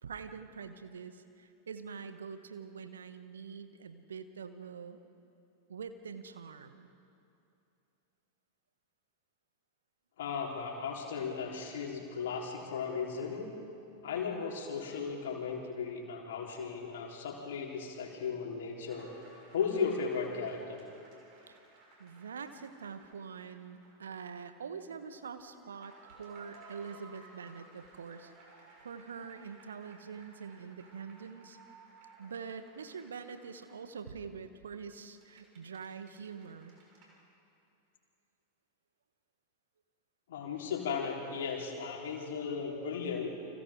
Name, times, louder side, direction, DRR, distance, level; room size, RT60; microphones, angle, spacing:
voice 1, 0.0-5.0 5.7-6.9 21.5-21.6 22.0-28.3 28.8-31.6 32.2-36.8, right 6 dB, 70° right, 9 dB, 1.2 m, -45 dB
voice 2, 10.2-13.5 14.0-19.1 19.5-20.8 40.3-43.3, left 6 dB, 60° left, -1 dB, 4.2 m, -36 dB
sound 1, 18.9-24.0 24.3-24.4 25.3-33.9 35.0-37.2, right 3 dB, 45° right, 6.0 m, -58 dB
30.0 x 25.5 x 3.9 m, 2.6 s
figure-of-eight pair, 90°, 0 cm